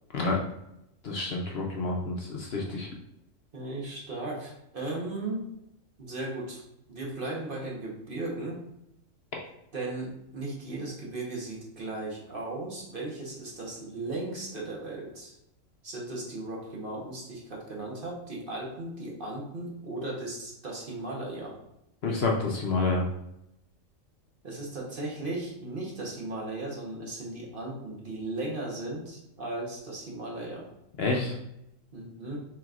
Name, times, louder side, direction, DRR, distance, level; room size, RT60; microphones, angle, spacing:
voice 1, 1.0-2.9 22.0-23.1 31.0-31.3, left 3 dB, 55° left, -1 dB, 0.8 m, -28 dB
voice 2, 3.5-5.5 6.0-6.6 6.9-8.6 9.7-15.3 15.8-21.6 24.4-30.7 31.9-32.4, right 2 dB, 45° right, -3 dB, 1.1 m, -36 dB
6.0 x 3.4 x 2.4 m, 0.82 s
omnidirectional pair, 1.4 m